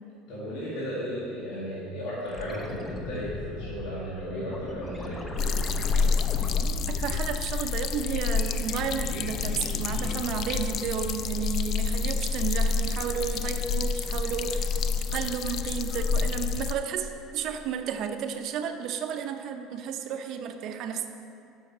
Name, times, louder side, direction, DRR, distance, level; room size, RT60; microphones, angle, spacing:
voice 1, 0.3-5.2, equal, 75° left, -9 dB, 2.3 m, -35 dB
sound 1, 2.2-8.0 8.4-10.9 13.4-13.5, left 1 dB, 15° left, 0.9 m, -39 dB
sound 2, 5.4-16.7, left 5 dB, 45° left, 0.4 m, -28 dB
voice 2, 6.9-14.8 15.1-21.1, right 7 dB, 55° right, 6 dB, 0.7 m, -32 dB
7.8 x 5.6 x 7.3 m, 2.7 s
supercardioid pair, 125°, 0 cm